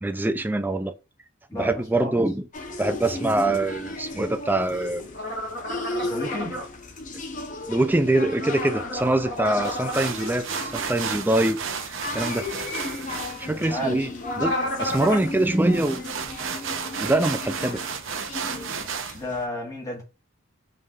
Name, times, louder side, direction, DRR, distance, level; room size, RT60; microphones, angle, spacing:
voice 1, 0.0-0.9 1.5-2.5 2.8-5.0 7.7-11.6 11.8-12.5 13.4-14.1 14.4-16.1 17.0-17.8, right 1 dB, 10° right, 0.4 m, -24 dB
voice 2, 1.5-2.2 6.0-6.6 13.5-14.0 19.1-20.0, equal, 20° left, 1.7 m, -32 dB
sound 1, 2.5-19.5, left 2 dB, 40° left, 0.8 m, -36 dB
sound 2, 5.1-6.6 8.3-10.1 14.2-15.3, equal, 65° left, 2.6 m, -30 dB
sound 3, 9.6-19.2, right 6 dB, 80° right, 0.7 m, -34 dB
5.5 x 3.4 x 2.5 m
head